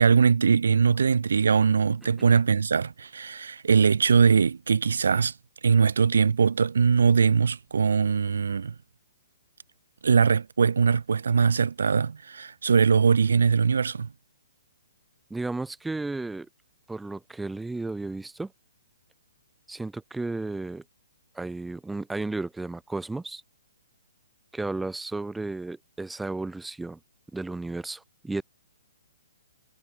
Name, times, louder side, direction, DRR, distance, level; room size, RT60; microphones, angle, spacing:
voice 1, 0.0-5.3 5.6-8.7 10.0-14.1, right 6 dB, 85° right, 1.2 m, -21 dB
voice 2, 15.3-16.5 16.9-18.5 19.7-20.8 21.3-23.4 24.5-27.0 27.3-28.4, right 2 dB, 5° right, 7.8 m, -33 dB
hypercardioid pair, 170°, 0 cm